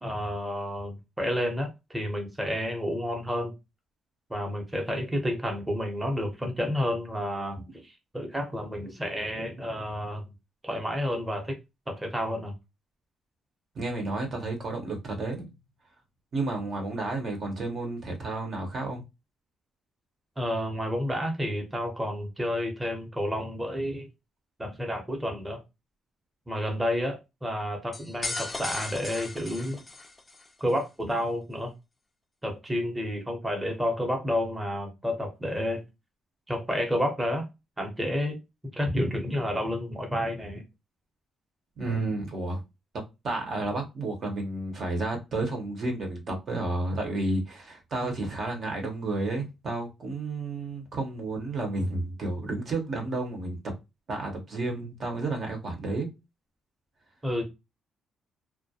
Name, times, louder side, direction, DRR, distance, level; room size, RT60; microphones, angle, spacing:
voice 1, 0.0-3.5 4.3-10.3 10.6-11.6 11.9-12.5 20.4-24.1 24.6-25.6 26.5-29.8 30.6-31.7 32.4-35.8 36.5-37.4 37.8-38.4 38.7-40.6 57.2-57.4, equal, 15° right, 0.8 m, -30 dB
voice 2, 13.7-15.5 16.3-19.0 41.8-42.6 43.2-53.6 54.1-56.1, right 2 dB, 55° right, 0.8 m, -31 dB
sound 1, 27.9-30.5, left 2 dB, 20° left, 0.4 m, -36 dB
2.3 x 2.0 x 2.7 m
cardioid pair, 90°, 0 cm